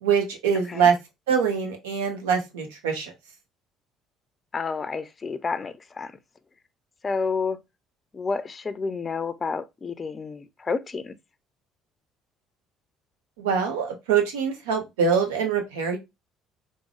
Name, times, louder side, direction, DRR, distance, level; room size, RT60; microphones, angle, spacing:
voice 1, 0.0-0.9 1.3-3.1 13.4-16.0, right 6 dB, 75° right, 0.7 m, -24 dB
voice 2, 4.5-6.1 7.0-7.6 8.1-11.1, left 4 dB, 30° left, 0.4 m, -30 dB
3.7 x 2.0 x 3.0 m
figure-of-eight pair, 50°, 0 cm